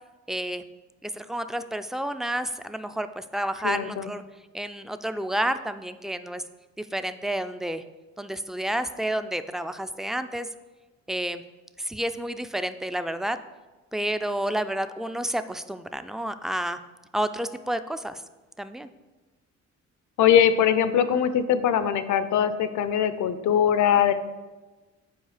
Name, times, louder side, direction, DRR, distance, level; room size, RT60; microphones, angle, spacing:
voice 1, 0.3-0.6 1.0-4.2 4.5-6.4 6.8-7.8 8.2-10.5 11.1-11.4 11.8-13.4 13.9-16.8 17.1-18.2 18.6-18.9, right 1 dB, ahead, 10 dB, 0.3 m, -30 dB
voice 2, 3.6-4.1 20.2-24.1, left 9 dB, 75° left, 12 dB, 0.6 m, -21 dB
8.0 x 4.5 x 4.9 m, 1.2 s
cardioid pair, 90°, 30 cm